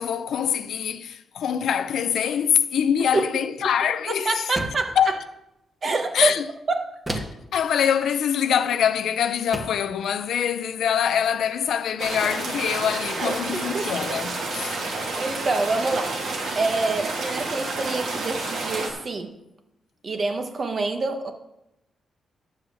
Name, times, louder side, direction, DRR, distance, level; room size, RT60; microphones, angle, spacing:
voice 1, 0.0-4.4 5.0-5.2 6.1-6.4 7.5-14.8, left 8 dB, 80° left, 0.7 m, -24 dB
voice 2, 4.0-5.0 5.8-6.4 6.7-7.0 13.2-13.8 15.2-16.2 16.5-19.3 20.0-21.3, right 3 dB, 45° right, 1.2 m, -26 dB
sound 1, 4.5-5.0 7.1-7.5 8.8-9.0 9.5-9.9, right 1 dB, 15° right, 1.4 m, -32 dB
sound 2, 12.0-18.9, right 3 dB, 85° right, 2.3 m, -30 dB
10.5 x 4.8 x 7.5 m
cardioid pair, 105°, 0 cm